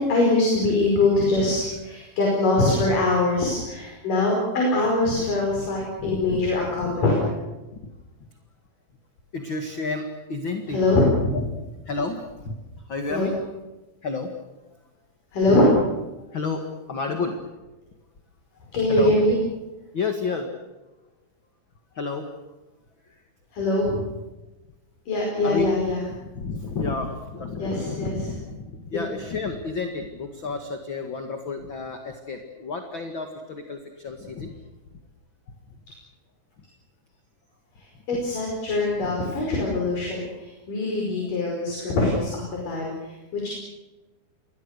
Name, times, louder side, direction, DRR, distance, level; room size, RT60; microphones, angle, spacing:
voice 1, 0.0-7.3 10.7-11.4 13.1-13.3 15.3-15.7 18.7-19.4 23.5-24.0 25.1-26.0 27.6-28.1 38.1-43.5, left 2 dB, 60° left, -1 dB, 6.7 m, -23 dB
voice 2, 6.0-6.4 6.8-6.9 7.8-7.9 9.3-10.8 11.3-11.4 11.9-12.6 12.9-13.3 14.0-14.3 16.3-17.4 18.9-19.2 19.9-20.5 22.0-22.3 25.4-25.7 26.1-34.5 38.1-38.2 39.0-39.2, left 4 dB, 40° left, 5 dB, 2.1 m, -31 dB
29.0 x 22.5 x 6.7 m, 1.1 s
omnidirectional pair, 4.4 m